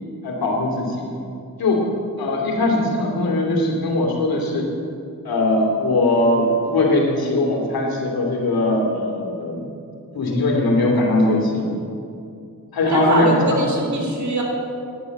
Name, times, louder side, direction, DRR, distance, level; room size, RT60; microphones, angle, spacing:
voice 1, 0.2-1.0 1.6-1.8 2.2-4.7 5.2-9.6 10.1-11.7 12.7-13.6, left 2 dB, 90° left, 0 dB, 2.7 m, -20 dB
voice 2, 12.9-14.4, right 2 dB, 55° right, 0 dB, 3.3 m, -22 dB
11.0 x 9.2 x 8.1 m, 2.5 s
cardioid pair, 70°, 35 cm